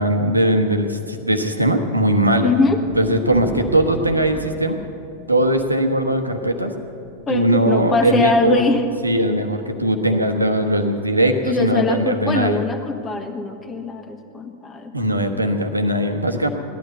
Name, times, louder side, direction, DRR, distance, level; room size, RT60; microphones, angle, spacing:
voice 1, 0.0-2.5 3.0-4.8 5.3-6.7 7.3-8.6 9.0-12.6 14.9-16.5, right 1 dB, 85° right, 6 dB, 1.2 m, -19 dB
voice 2, 2.4-2.8 7.3-8.8 11.4-15.4, left 3 dB, 20° left, 6 dB, 1.4 m, -22 dB
sound 1, 2.7-9.2, right 4 dB, 20° right, 1.8 m, -37 dB
17.0 x 12.0 x 6.8 m, 2.9 s
figure-of-eight pair, 90°, 0 cm